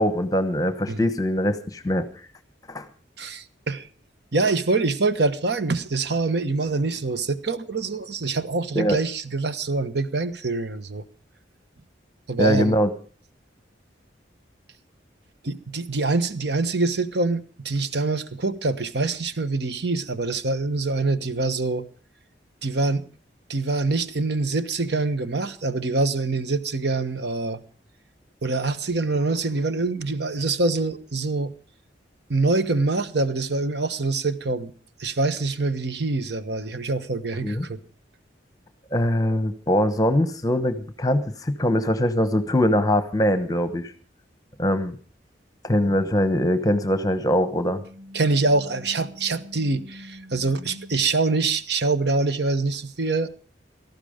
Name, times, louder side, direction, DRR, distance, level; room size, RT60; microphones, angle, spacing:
voice 1, 0.0-2.1 2.7-2.9 8.7-9.0 12.4-12.9 37.4-37.6 38.9-43.9 44.6-45.0 45.6-47.8, left 1 dB, 20° left, 11 dB, 1.0 m, -22 dB
voice 2, 3.2-3.9 4.3-11.0 12.3-12.8 15.4-21.9 22.6-23.0 23.5-27.6 28.4-31.5 32.3-34.7 35.0-37.8 48.1-53.3, right 3 dB, 65° right, 11 dB, 1.2 m, -25 dB
sound 1, 45.8-51.0, left 1 dB, 20° right, 2.3 m, -44 dB
18.0 x 14.0 x 5.1 m, 0.40 s
head